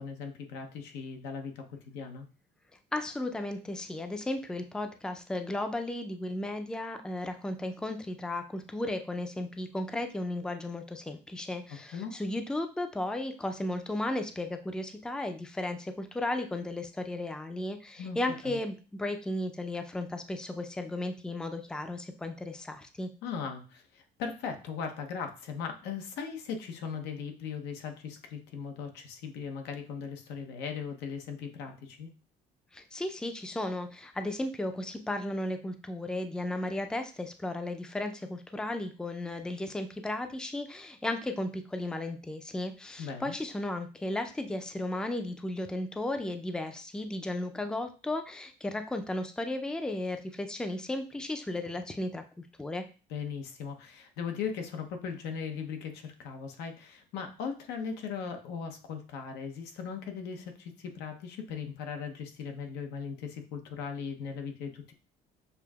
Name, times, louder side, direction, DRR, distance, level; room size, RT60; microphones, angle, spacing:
voice 1, 0.0-2.3 11.9-12.1 18.0-18.2 18.4-18.6 23.2-32.1 43.0-43.4 53.1-64.9, left 6 dB, 90° left, 5 dB, 0.8 m, -38 dB
voice 2, 2.9-23.1 32.7-52.2 52.6-52.8, left 1 dB, 5° left, 7 dB, 0.4 m, -35 dB
6.8 x 2.6 x 2.3 m, 0.35 s
cardioid pair, 110°, 17 cm